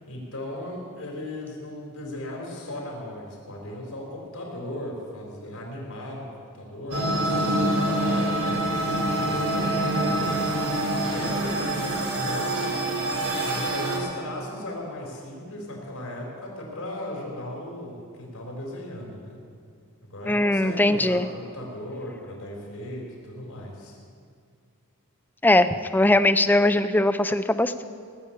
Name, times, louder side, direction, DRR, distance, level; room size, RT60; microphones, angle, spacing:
voice 1, 0.1-8.6 9.2-10.4 10.9-12.9 13.5-19.4 20.0-24.0, left 1 dB, 80° left, -2 dB, 4.1 m, -37 dB
sound 1, 6.9-14.0, right 1 dB, 75° right, 3.2 m, -25 dB
voice 2, 20.3-21.3 25.4-25.7 25.9-27.8, left 1 dB, 10° left, 10 dB, 0.5 m, -20 dB
18.0 x 7.1 x 8.6 m, 2.2 s
head